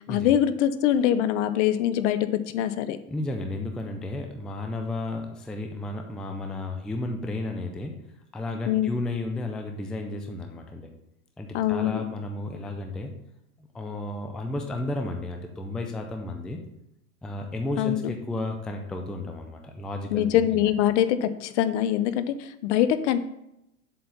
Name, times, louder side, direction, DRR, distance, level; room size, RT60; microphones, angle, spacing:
voice 1, 0.1-3.0 8.7-8.9 11.5-12.0 17.8-18.0 20.1-23.2, left 11 dB, 55° left, 12 dB, 0.8 m, -23 dB
voice 2, 3.1-8.0 8.3-10.9 11.4-13.1 13.6-16.6 17.2-20.3 20.5-20.7, left 2 dB, ahead, 4 dB, 0.4 m, -33 dB
7.5 x 4.4 x 6.8 m, 0.84 s
hypercardioid pair, 120°, 43 cm